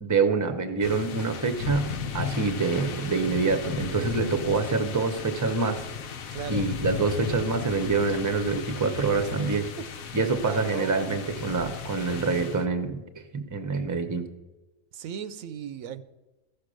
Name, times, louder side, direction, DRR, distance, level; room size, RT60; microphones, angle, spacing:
voice 1, 0.0-5.8 6.5-9.7 10.1-13.0 13.3-14.3, right 4 dB, 15° right, 8 dB, 0.7 m, -26 dB
sound 1, 0.8-12.7, left 6 dB, 85° left, 1.2 m, -35 dB
voice 2, 6.3-6.7 9.5-9.9 10.4-11.1 14.9-16.0, right 8 dB, 80° right, 12 dB, 1.0 m, -37 dB
14.0 x 6.7 x 6.3 m, 1.1 s
omnidirectional pair, 1.4 m